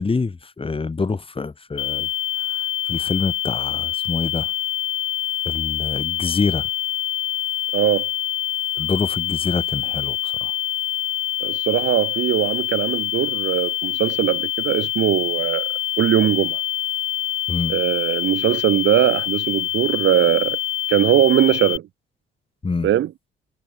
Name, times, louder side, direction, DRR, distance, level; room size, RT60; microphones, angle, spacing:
voice 1, 0.0-2.1 2.4-4.5 5.5-6.7 8.8-10.5 17.5-17.7 22.6-22.9, left 4 dB, 25° left, 3.9 m, -26 dB
sound 1, 1.8-21.8, left 13 dB, 80° left, 3.4 m, -25 dB
voice 2, 7.7-8.1 11.4-16.6 17.7-20.6 20.9-21.8 22.8-23.1, right 12 dB, 75° right, 2.8 m, -20 dB
cardioid pair, 90°, 20 cm